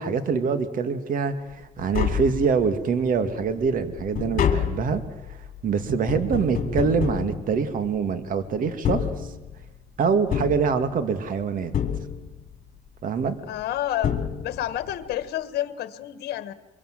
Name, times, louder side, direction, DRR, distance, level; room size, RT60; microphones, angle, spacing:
voice 1, 0.0-5.0 5.3-5.4 5.6-9.1 10.0-11.7 13.0-13.4, right 5 dB, 55° right, 10 dB, 2.2 m, -24 dB
Tap, 1.5-1.6 1.8-2.9 3.3-8.1 8.7-9.8 10.3-11.3 11.7-12.6 13.6-13.7 14.0-14.9 15.1-15.2, left 8 dB, 55° left, 3.1 m, -28 dB
voice 2, 13.5-14.1 14.4-16.5, left 12 dB, 70° left, 12 dB, 1.6 m, -29 dB
24.0 x 23.0 x 7.7 m, 1.1 s
cardioid pair, 110°, 17 cm